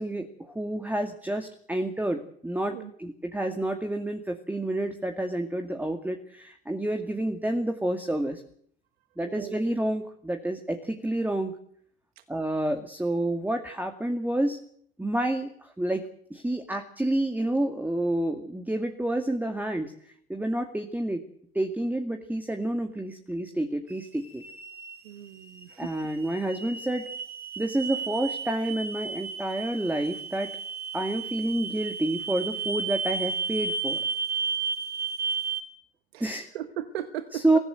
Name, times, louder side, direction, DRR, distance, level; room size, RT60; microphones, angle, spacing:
voice 1, 0.0-8.4 9.2-11.5 12.3-14.6 15.0-16.0 16.3-21.2 21.5-24.4 25.8-27.1 27.6-30.5 30.9-34.0 36.2-36.5 37.3-37.6, right 1 dB, 5° right, 5 dB, 2.3 m, -29 dB
voice 2, 9.2-9.6 12.2-12.3 25.0-25.9 36.1-37.4, right 11 dB, 75° right, 11 dB, 1.3 m, -37 dB
sound 1, 23.9-35.6, right 5 dB, 30° right, 5.7 m, -33 dB
24.5 x 15.5 x 7.9 m, 0.63 s
hypercardioid pair, 75°, 31 cm